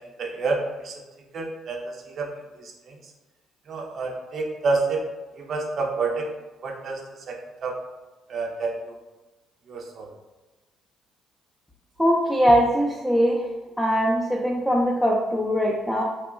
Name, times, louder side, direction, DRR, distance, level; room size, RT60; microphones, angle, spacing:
voice 1, 0.2-0.9 1.3-1.8 2.2-2.3 2.6-2.9 3.7-5.0 5.4-6.3 6.6-7.0 7.3-7.4 7.6-7.8 8.3-8.7 9.7-10.1, right 3 dB, 55° right, 0 dB, 0.4 m, -28 dB
voice 2, 12.0-13.4 13.8-16.0, equal, ahead, -3 dB, 0.4 m, -21 dB
2.8 x 2.2 x 2.2 m, 1.1 s
hypercardioid pair, 50°, 0 cm